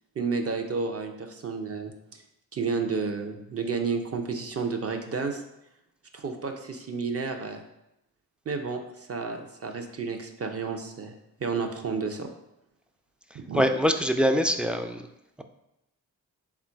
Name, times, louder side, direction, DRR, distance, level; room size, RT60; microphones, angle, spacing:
voice 1, 0.2-2.2 2.5-5.4 6.1-7.6 8.5-11.1 11.4-12.3 13.3-13.6, right 4 dB, 40° right, 4 dB, 0.6 m, -31 dB
voice 2, 13.3-15.1, equal, 5° right, 6 dB, 0.3 m, -24 dB
3.7 x 2.4 x 4.4 m, 0.88 s
supercardioid pair, 40°, 37 cm